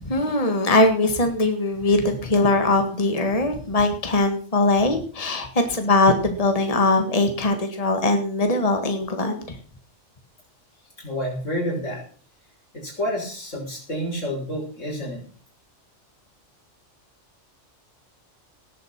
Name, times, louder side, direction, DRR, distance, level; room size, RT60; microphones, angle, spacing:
voice 1, 0.0-9.6, left 2 dB, 30° left, 5 dB, 1.9 m, -21 dB
voice 2, 11.0-12.0 12.7-15.2, equal, 80° left, 0 dB, 6.1 m, -29 dB
18.5 x 8.0 x 6.0 m, 0.42 s
omnidirectional pair, 1.3 m